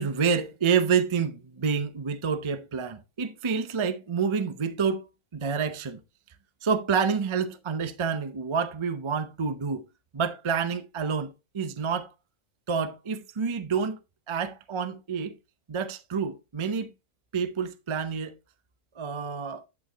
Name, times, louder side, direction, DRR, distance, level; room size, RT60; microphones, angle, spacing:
voice 1, 0.0-5.0 5.3-6.0 6.6-9.8 10.1-12.1 12.7-14.0 14.3-15.3 15.7-16.9 17.3-18.3 19.0-19.7, right 6 dB, 45° right, 0.4 m, -28 dB
9.3 x 8.3 x 2.8 m
omnidirectional pair, 1.6 m